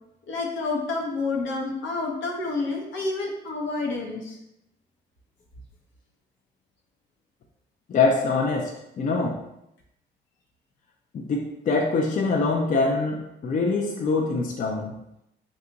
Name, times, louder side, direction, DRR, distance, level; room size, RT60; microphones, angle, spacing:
voice 1, 0.3-4.4, left 3 dB, 70° left, 0 dB, 0.8 m, -29 dB
voice 2, 7.9-9.4 11.1-15.0, left 3 dB, 40° left, 1 dB, 0.4 m, -24 dB
2.8 x 2.3 x 3.8 m, 0.83 s
cardioid pair, 90°, 20 cm